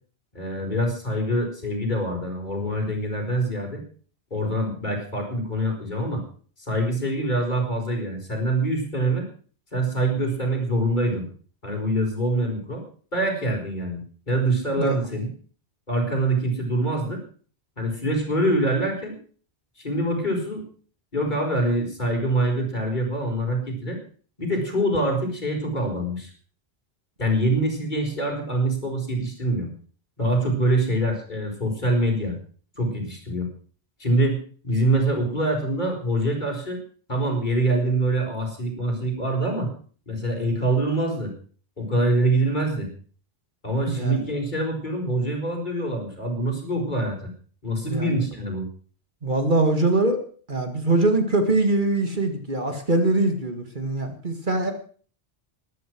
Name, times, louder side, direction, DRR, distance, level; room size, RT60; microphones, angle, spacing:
voice 1, 0.3-3.8 4.3-6.2 6.6-9.3 9.7-11.2 11.6-12.8 13.1-14.0 14.3-15.3 15.9-17.2 17.8-19.1 19.8-20.6 21.1-24.0 24.4-26.3 27.2-29.7 30.2-32.4 32.8-33.5 34.0-34.4 34.6-36.8 37.1-39.7 40.1-41.3 41.8-42.9 43.6-47.3 47.6-48.7, right 1 dB, 45° left, 0 dB, 5.3 m, -25 dB
voice 2, 43.9-44.3 47.8-48.2 49.2-50.2 50.5-54.7, right 2 dB, 50° right, 6 dB, 2.2 m, -23 dB
14.0 x 12.0 x 6.2 m, 0.43 s
omnidirectional pair, 1.1 m